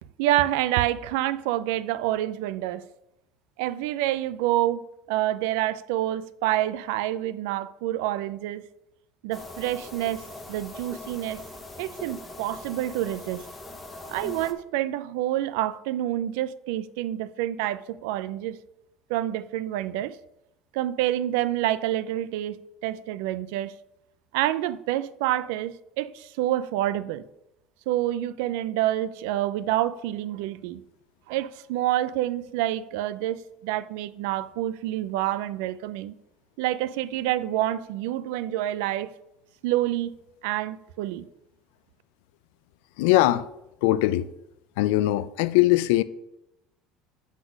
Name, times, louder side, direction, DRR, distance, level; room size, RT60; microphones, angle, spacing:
voice 1, 0.2-2.8 3.6-8.7 9.2-11.4 11.8-13.4 14.1-18.6 19.1-20.2 20.7-23.8 24.3-27.2 27.9-30.8 31.3-36.1 36.6-39.1 39.6-40.2 40.4-41.3, right 14 dB, 80° right, 0.4 m, -27 dB
sound 1, 9.3-14.5, left 2 dB, 10° left, 0.7 m, -41 dB
voice 2, 43.0-43.5 43.8-44.3 44.8-46.0, left 16 dB, 85° left, 0.4 m, -21 dB
7.9 x 4.0 x 6.2 m
cardioid pair, 170°, 0 cm